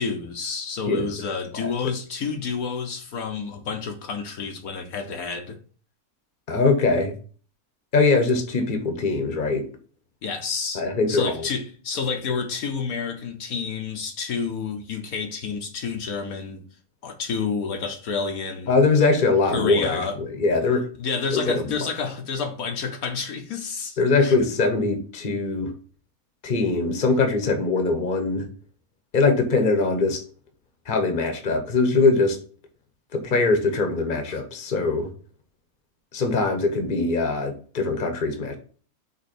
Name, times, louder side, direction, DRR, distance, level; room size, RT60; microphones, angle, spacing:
voice 1, 0.0-5.6 10.2-16.6 17.0-18.8 19.5-20.2 21.0-24.3 34.3-34.4, left 5 dB, 70° left, 1.3 m, -29 dB
voice 2, 0.9-1.2 1.8-1.9 6.5-7.1 7.9-9.7 10.7-11.5 18.7-20.9 21.3-21.9 24.0-25.7 26.4-28.5 29.1-30.2 30.9-32.4 33.1-35.1 36.1-38.6, left 3 dB, 35° left, 1.2 m, -22 dB
5.5 x 4.0 x 4.3 m
omnidirectional pair, 1.6 m